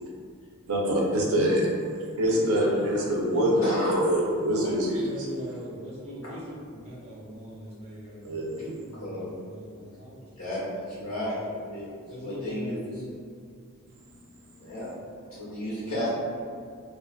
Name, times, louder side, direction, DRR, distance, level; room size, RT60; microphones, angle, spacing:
voice 1, 0.7-1.8 2.2-5.3 8.2-8.6, equal, 70° right, -3 dB, 0.5 m, -25 dB
voice 2, 2.3-10.2 10.9-11.5 12.1-13.2, equal, 30° right, -9 dB, 0.7 m, -38 dB
voice 3, 3.6-4.0 9.0-9.2 10.4-11.3 11.7-11.8 12.2-12.8 14.6-14.9 15.3-16.1, left 1 dB, 80° left, -9 dB, 1.2 m, -32 dB
2.3 x 2.3 x 2.3 m, 2.2 s
head